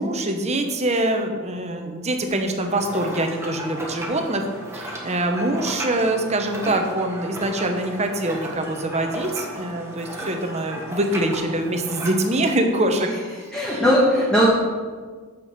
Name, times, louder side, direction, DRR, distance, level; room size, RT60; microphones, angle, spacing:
voice 1, 0.0-4.5 4.7-13.1 13.6-13.8, right 1 dB, 30° right, 4 dB, 0.9 m, -24 dB
sound 1, 2.6-12.5, right 1 dB, 10° right, 1.2 m, -35 dB
voice 2, 13.5-14.5, equal, 5° left, -7 dB, 1.4 m, -18 dB
6.3 x 6.1 x 6.6 m, 1.5 s
head